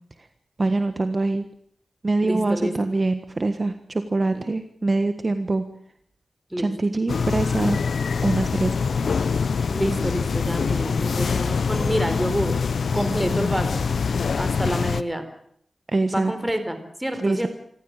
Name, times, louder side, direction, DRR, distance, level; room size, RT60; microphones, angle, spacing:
voice 1, 0.6-1.4 2.0-5.6 6.6-7.8 8.2-8.9 15.9-16.3 17.2-17.5, right 2 dB, 35° right, 9 dB, 1.4 m, -24 dB
voice 2, 2.2-2.7 4.3-4.5 6.5-6.7 9.7-12.5 12.9-13.9 14.4-15.2 16.1-17.5, equal, 10° right, 9 dB, 4.2 m, -27 dB
sound 1, 7.1-15.0, left 5 dB, 80° left, 0.9 m, -24 dB
26.5 x 15.0 x 9.0 m, 0.67 s
wide cardioid pair, 90°, 0 cm